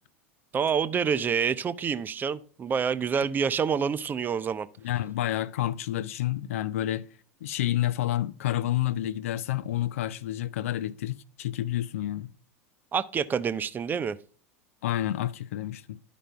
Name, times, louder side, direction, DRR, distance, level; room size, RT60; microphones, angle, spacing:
voice 1, 0.5-4.7 12.9-14.2, right 6 dB, 25° right, 0.6 m, -27 dB
voice 2, 4.8-7.1 7.4-12.3 14.8-16.0, left 13 dB, 70° left, 0.5 m, -29 dB
12.5 x 5.0 x 2.2 m
hypercardioid pair, 85°, 8 cm